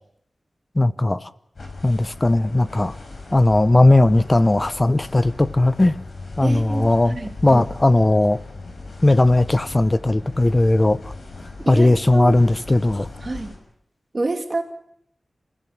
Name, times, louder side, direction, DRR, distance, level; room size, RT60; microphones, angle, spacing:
voice 1, 0.7-1.3 1.8-3.0 3.3-6.0 6.4-7.2 7.4-8.4 9.0-11.0 11.7-13.1, left 2 dB, 25° left, 15 dB, 0.9 m, -17 dB
sound 1, 1.5-13.6, left 3 dB, 70° left, 6.1 m, -38 dB
voice 2, 6.4-7.6 11.6-12.4 13.2-13.5 14.1-14.6, right 2 dB, 35° right, 4 dB, 3.1 m, -28 dB
27.0 x 16.5 x 8.8 m, 0.72 s
wide cardioid pair, 105°, 0 cm